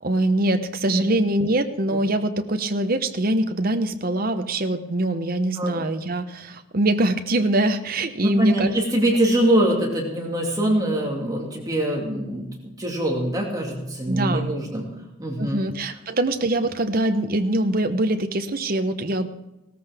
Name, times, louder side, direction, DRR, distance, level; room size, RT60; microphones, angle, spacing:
voice 1, 0.0-8.8 14.1-14.5 15.4-19.3, right 1 dB, 45° right, 8 dB, 0.9 m, -23 dB
voice 2, 5.6-5.9 8.2-14.8 15.2-15.6, right 1 dB, 20° right, -1 dB, 2.3 m, -23 dB
17.5 x 14.0 x 3.5 m, 0.94 s
head